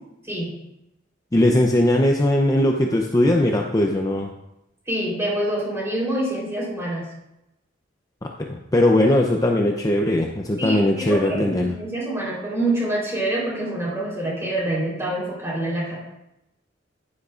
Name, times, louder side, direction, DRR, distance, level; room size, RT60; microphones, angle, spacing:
voice 1, 1.3-4.3 8.2-11.7, left 1 dB, 20° left, 1 dB, 0.5 m, -19 dB
voice 2, 4.9-7.0 10.6-16.0, right 1 dB, 15° right, -5 dB, 3.5 m, -26 dB
10.5 x 9.9 x 2.5 m, 0.89 s
head